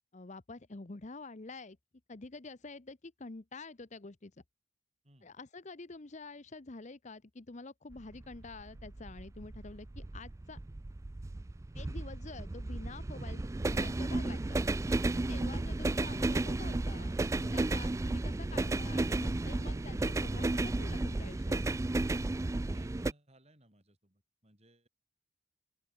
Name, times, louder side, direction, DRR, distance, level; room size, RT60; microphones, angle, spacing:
voice 1, 0.1-1.8 2.1-4.3 5.2-10.6 11.7-14.6 15.3-21.6, left 3 dB, 35° left, 0.8 m, -48 dB
sound 1, 7.9-23.1, right 2 dB, 15° right, 0.3 m, -33 dB
voice 2, 22.6-24.9, right 1 dB, 30° right, 7.0 m, -64 dB
open air
head